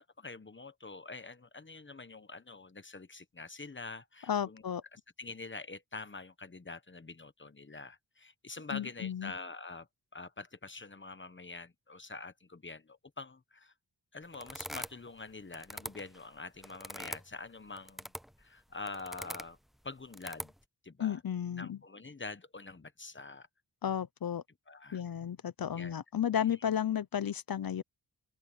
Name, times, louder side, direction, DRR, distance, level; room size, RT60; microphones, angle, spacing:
voice 1, 0.0-4.6 4.9-13.7 14.1-18.1 18.4-19.6 19.8-20.5 20.8-21.2 21.6-23.5 24.7-25.0 25.7-26.0 26.4-26.5, left 3 dB, 30° left, 1.2 m, -46 dB
voice 2, 4.3-4.8 8.7-9.3 21.0-21.8 23.8-24.4 24.9-27.8, left 9 dB, 55° left, 0.7 m, -33 dB
sound 1, 14.3-15.2 15.5-17.3 17.8-18.4 18.9-19.5 20.1-20.6, equal, ahead, 0.4 m, -43 dB
open air
wide cardioid pair, 80°, 42 cm